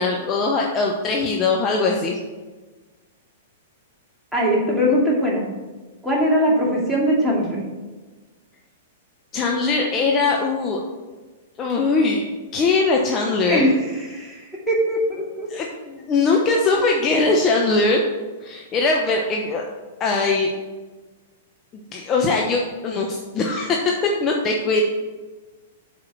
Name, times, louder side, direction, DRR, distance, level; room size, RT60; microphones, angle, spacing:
voice 1, 0.0-2.2 9.3-10.8 11.6-13.7 15.5-18.0 18.4-19.6 20.0-20.5 21.9-24.8, left 3 dB, 30° left, 0 dB, 0.9 m, -21 dB
voice 2, 4.3-5.4 6.0-7.6 13.5-15.5, equal, 5° right, -5 dB, 2.6 m, -21 dB
7.5 x 4.8 x 6.1 m, 1.3 s
hypercardioid pair, 110°, 0 cm